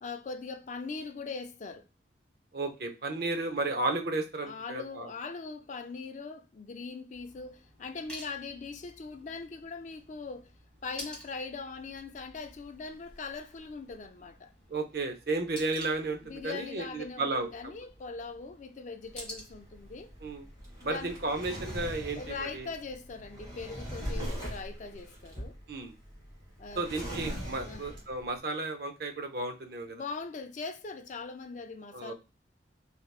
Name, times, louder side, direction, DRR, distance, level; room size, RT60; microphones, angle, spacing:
voice 1, 0.0-1.8 4.4-10.5 10.8-14.5 16.2-20.1 20.8-21.1 22.1-25.6 26.6-26.9 27.7-27.9 29.9-32.1, left 4 dB, 40° left, 0.4 m, -41 dB
voice 2, 2.5-5.1 14.7-17.5 20.2-20.5 20.8-22.7 25.7-25.9 26.8-30.0 31.9-32.1, right 2 dB, 55° right, 0.6 m, -33 dB
sound 1, 7.1-21.4, equal, 5° left, 1.3 m, -52 dB
Drawer open or close, 19.0-28.3, equal, 25° right, 1.5 m, -41 dB
3.3 x 2.8 x 2.3 m
head